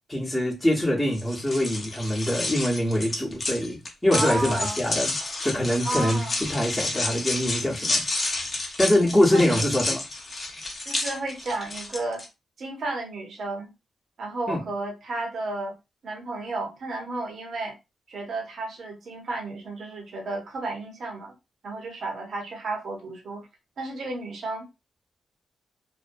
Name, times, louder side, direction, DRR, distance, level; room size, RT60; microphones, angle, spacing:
voice 1, 0.1-5.1 5.4-8.0 8.8-10.0 14.5-14.6, left 1 dB, 10° left, 0.9 m, -24 dB
sound 1, 1.1-12.3, left 2 dB, 40° left, 0.7 m, -30 dB
voice 2, 4.1-4.8 5.8-6.4 8.9-9.7 10.9-12.2 12.6-13.7 14.2-15.7 16.0-17.7 18.1-21.3 21.6-23.5 23.8-24.6, right 2 dB, 65° right, 0.7 m, -32 dB
2.5 x 2.1 x 2.5 m
cardioid pair, 80°, 0 cm